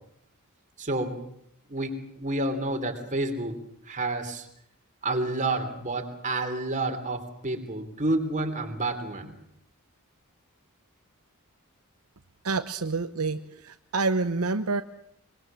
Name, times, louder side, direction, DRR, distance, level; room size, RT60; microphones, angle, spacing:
voice 1, 0.8-1.2 1.7-3.6 3.9-4.5 5.0-9.4, right 2 dB, 35° right, 5 dB, 3.1 m, -29 dB
voice 2, 12.4-14.8, right 3 dB, 75° right, 9 dB, 0.9 m, -28 dB
24.0 x 22.0 x 7.5 m, 0.70 s
head